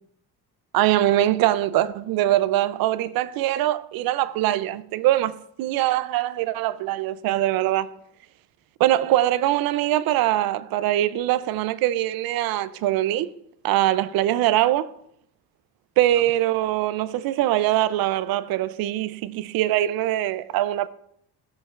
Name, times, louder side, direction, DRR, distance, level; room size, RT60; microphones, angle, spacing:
voice 1, 0.7-7.9 8.8-13.3 13.6-14.9 16.0-20.9, right 14 dB, 70° right, 0.5 m, -22 dB
14.0 x 5.2 x 2.4 m
cardioid pair, 135°, 37 cm